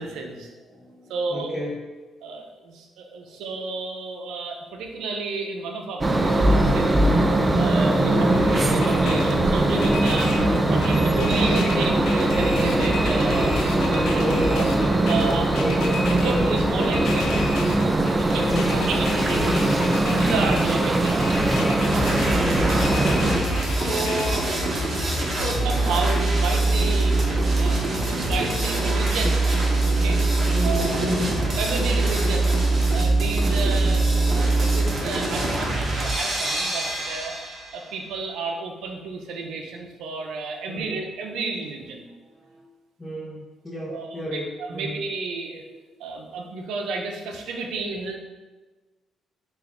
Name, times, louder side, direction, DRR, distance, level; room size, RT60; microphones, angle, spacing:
voice 1, 0.0-0.5 1.1-1.7 2.2-7.0 7.5-10.3 10.7-14.2 14.5-14.6 15.1-15.6 16.1-17.3 18.2-18.4 18.7-19.5 20.0-21.2 23.6-24.8 25.1-29.5 29.8-30.2 30.6-31.1 31.6-32.5 32.9-37.3 37.7-42.1 43.9-44.4 44.7-45.6 46.0-48.2, right 3 dB, 85° right, 2 dB, 0.4 m, -31 dB
voice 2, 0.6-1.8 3.3-3.4 8.0-8.5 14.1-14.7 15.6-16.1 18.3-18.8 19.3-19.7 22.2-22.9 23.4-24.3 30.5-31.4 40.7-41.0 42.2-42.7 43.0-45.0, equal, 20° left, -5 dB, 0.6 m, -32 dB
sound 1, 6.0-23.4, right 1 dB, 25° right, 0.3 m, -21 dB
sound 2, 8.3-24.3, left 3 dB, 90° left, 0.4 m, -33 dB
sound 3, 21.8-37.8, right 2 dB, 40° right, 0.8 m, -23 dB
3.4 x 2.4 x 3.6 m, 1.2 s
cardioid pair, 90°, 0 cm